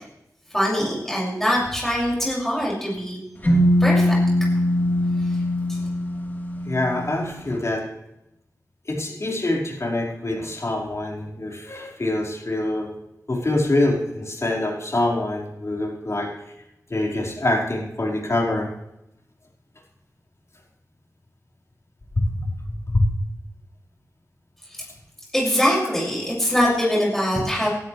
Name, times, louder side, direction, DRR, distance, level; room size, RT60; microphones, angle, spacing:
voice 1, 0.5-3.2 3.8-4.2 25.3-27.7, equal, 5° left, -5 dB, 6.6 m, -22 dB
sound 1, 3.4-7.3, left 1 dB, 30° left, 4.1 m, -21 dB
voice 2, 6.6-7.8 8.8-12.9 13.3-16.3 16.9-18.7 22.2-22.5 22.9-23.1, left 1 dB, 50° left, -2 dB, 5.1 m, -24 dB
19.0 x 13.0 x 3.4 m, 0.86 s
wide cardioid pair, 60°, 6 cm